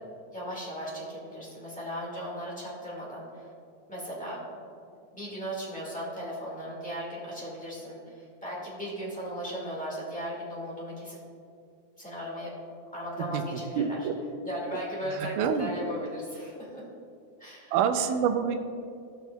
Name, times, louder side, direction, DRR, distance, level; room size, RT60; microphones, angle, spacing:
voice 1, 0.3-3.5 3.9-4.5 5.1-11.2 12.0-12.5 12.9-14.0 14.4-16.8 17.4-17.7, equal, 5° left, -6 dB, 0.6 m, -37 dB
voice 2, 13.3-14.1 15.0-15.7 17.7-18.6, right 7 dB, 85° right, 7 dB, 2.1 m, -27 dB
18.0 x 6.0 x 2.3 m, 2.4 s
omnidirectional pair, 3.7 m